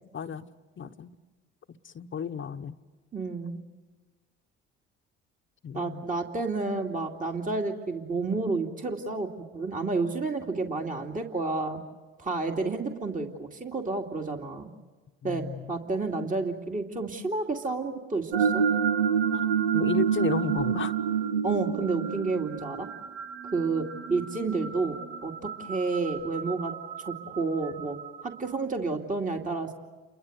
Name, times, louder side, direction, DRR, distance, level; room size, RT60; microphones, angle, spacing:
voice 1, 0.1-0.5 0.8-1.1 1.8-2.7 5.6-6.0 15.2-15.6 19.3-20.9, left 7 dB, 40° left, 8 dB, 1.1 m, -33 dB
voice 2, 3.1-3.6 5.7-11.8 12.2-14.7 15.2-18.7 21.4-22.9 23.5-26.7 27.0-28.0 28.2-29.7, right 3 dB, 25° right, 2 dB, 2.6 m, -30 dB
sound 1, 18.3-28.3, right 7 dB, 80° right, 1.1 m, -29 dB
29.0 x 23.5 x 8.1 m, 1.3 s
hypercardioid pair, 60°, 30 cm